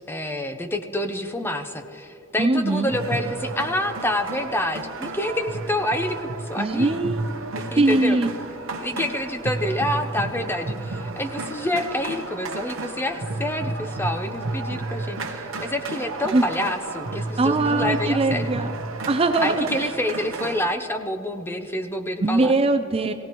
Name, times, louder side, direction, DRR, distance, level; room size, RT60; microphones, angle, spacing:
voice 1, 0.0-7.0 7.5-8.2 8.8-18.5 19.4-22.5, left 1 dB, 10° left, 7 dB, 0.7 m, -28 dB
voice 2, 2.4-2.9 6.6-7.2 7.8-8.3 16.2-16.4 17.4-18.7 19.1-19.9 22.2-23.1, right 2 dB, 30° right, 7 dB, 0.5 m, -21 dB
sound 1, 2.9-20.7, right 2 dB, 75° right, 0.8 m, -32 dB
22.0 x 16.5 x 3.0 m, 2.6 s
head